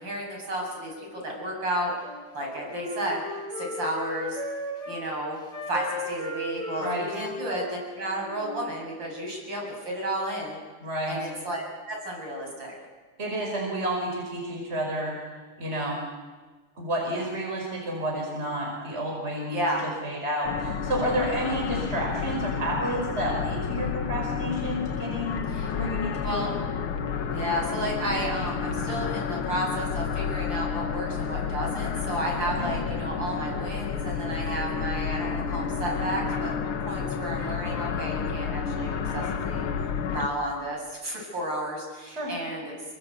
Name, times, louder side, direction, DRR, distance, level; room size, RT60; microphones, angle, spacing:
voice 1, 0.0-1.9 2.3-3.2 3.6-4.4 4.9-5.4 5.7-10.6 11.1-12.7 19.5-19.9 25.5-25.7 26.2-26.5 27.3-36.6 36.9-39.7 40.1-42.8, right 1 dB, 65° right, -1 dB, 9.0 m, -32 dB
Wind instrument woodwind instrument, 1.9-5.0 5.5-8.7, left 1 dB, 15° left, 6.9 m, -36 dB
voice 2, 10.8-11.2 13.2-15.2 15.6-16.0 16.8-19.7 20.0-25.4 25.7-26.4 32.4-32.7 42.1-42.3, equal, 30° right, 0 dB, 5.4 m, -30 dB
sound 1, 20.4-40.3, left 6 dB, 90° left, 2.3 m, -30 dB
28.0 x 24.0 x 8.3 m, 1.3 s
omnidirectional pair, 2.3 m